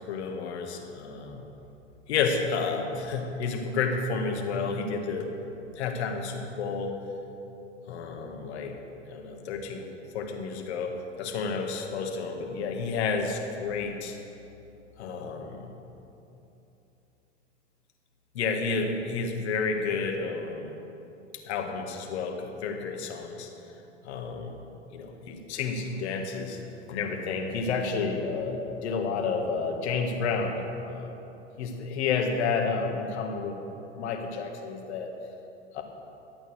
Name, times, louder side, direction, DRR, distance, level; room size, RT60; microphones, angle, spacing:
voice 1, 0.1-1.5 2.1-5.3 5.8-7.0 7.9-8.8 9.1-9.9 10.1-14.2 15.0-15.7 18.4-20.7 21.5-23.5 24.0-24.6 24.9-26.6 26.9-31.2 31.6-33.6 33.9-35.1 35.7-35.8, left 4 dB, 65° left, 3 dB, 1.8 m, -30 dB
12.5 x 8.7 x 6.4 m, 2.9 s
hypercardioid pair, 95°, 36 cm